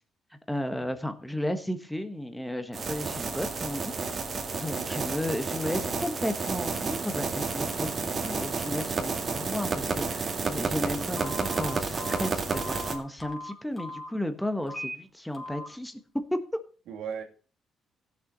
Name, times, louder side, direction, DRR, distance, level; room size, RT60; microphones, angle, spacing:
voice 1, 0.5-16.0, left 1 dB, 5° left, 1.3 m, -34 dB
sound 1, 2.7-13.0, right 4 dB, 40° right, 2.2 m, -31 dB
Telephone, 11.1-14.1 14.6-14.9 15.3-15.7, left 1 dB, 25° left, 3.2 m, -39 dB
voice 2, 16.9-17.2, right 7 dB, 85° right, 2.6 m, -40 dB
15.5 x 7.0 x 4.0 m
cardioid pair, 90°, 0 cm